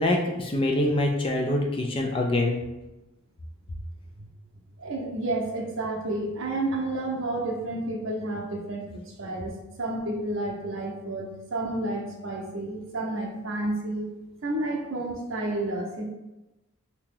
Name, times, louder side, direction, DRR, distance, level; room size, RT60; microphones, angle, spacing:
voice 1, 0.0-2.6, left 1 dB, 25° left, 1 dB, 0.3 m, -25 dB
voice 2, 4.8-14.0 14.4-16.1, right 2 dB, 60° right, 0 dB, 0.7 m, -30 dB
2.9 x 2.8 x 3.7 m, 1.0 s
head